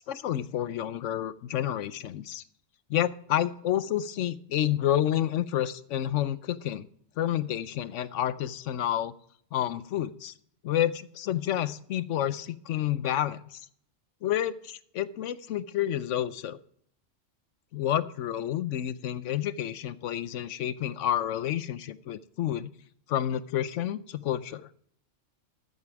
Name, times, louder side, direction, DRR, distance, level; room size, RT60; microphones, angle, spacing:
voice 1, 0.0-2.4 2.9-6.9 7.2-9.1 9.5-10.3 10.6-13.6 14.2-16.6 17.7-22.7 23.1-24.6, left 11 dB, 75° left, 16 dB, 1.0 m, -29 dB
14.0 x 8.3 x 4.7 m, 0.64 s
omnidirectional pair, 1.3 m